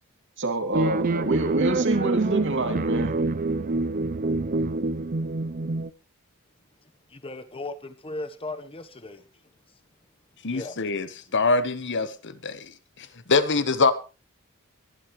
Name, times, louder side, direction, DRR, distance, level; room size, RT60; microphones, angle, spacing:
voice 1, 0.4-3.1, right 2 dB, 60° right, 2.8 m, -27 dB
sound 1, 0.7-5.9, right 3 dB, 40° right, 0.6 m, -26 dB
voice 2, 7.1-9.2 10.5-10.8, left 2 dB, 25° left, 1.0 m, -37 dB
voice 3, 10.4-11.1 11.3-12.7 13.0-13.9, left 4 dB, 55° left, 1.2 m, -24 dB
22.5 x 11.5 x 3.1 m
head